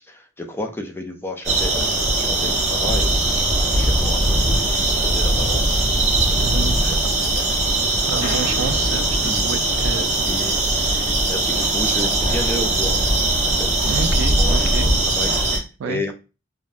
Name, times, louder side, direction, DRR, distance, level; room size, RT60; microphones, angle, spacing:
voice 1, 0.0-5.8 6.2-6.9 7.3-7.5 9.2-9.4 9.9-10.6 11.3-13.0 13.5-13.7 14.4-16.1, left 1 dB, 10° left, 4 dB, 0.4 m, -32 dB
sound 1, 1.4-15.6, right 2 dB, 35° right, 0.9 m, -20 dB
voice 2, 6.4-7.2 8.1-10.1 10.3-11.1 13.8-15.0 15.8-16.0, right 6 dB, 85° right, 11 dB, 0.3 m, -30 dB
sound 2, 8.2-10.6, left 2 dB, 80° left, 0.7 m, -35 dB
3.4 x 2.2 x 2.4 m, 0.30 s
head